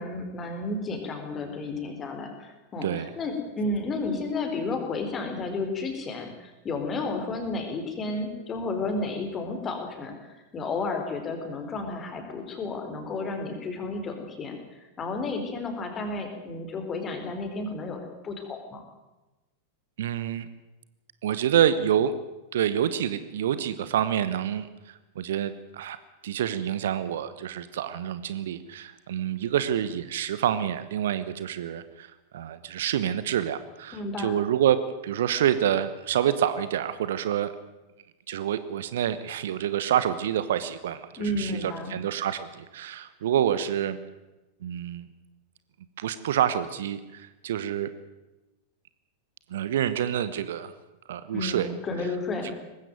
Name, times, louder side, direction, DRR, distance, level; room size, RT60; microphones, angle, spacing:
voice 1, 0.0-10.1 10.5-18.8 33.9-34.4 41.2-41.9 51.3-52.5, left 3 dB, 25° left, 5 dB, 4.2 m, -32 dB
voice 2, 20.0-20.5 21.2-22.1 22.5-26.0 26.2-37.5 38.3-44.0 44.6-45.1 46.0-47.9 49.5-50.7 51.1-51.7 52.4-52.5, right 10 dB, 60° right, 14 dB, 1.1 m, -27 dB
20.0 x 15.5 x 9.3 m, 1.1 s
figure-of-eight pair, 90°, 0 cm